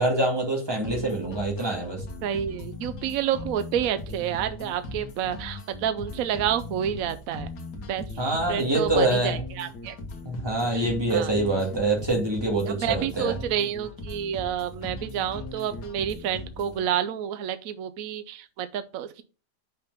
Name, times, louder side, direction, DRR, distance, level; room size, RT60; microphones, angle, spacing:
voice 1, 0.0-2.0 8.2-9.3 10.2-13.3, right 2 dB, 15° right, 0 dB, 2.1 m, -25 dB
sound 1, 0.8-16.8, left 2 dB, 75° left, 1.9 m, -39 dB
voice 2, 2.2-7.5 7.9-8.1 8.5-10.0 10.7-11.3 12.6-19.2, right 9 dB, 65° right, 11 dB, 0.9 m, -29 dB
5.8 x 5.1 x 5.5 m, 0.34 s
omnidirectional pair, 1.8 m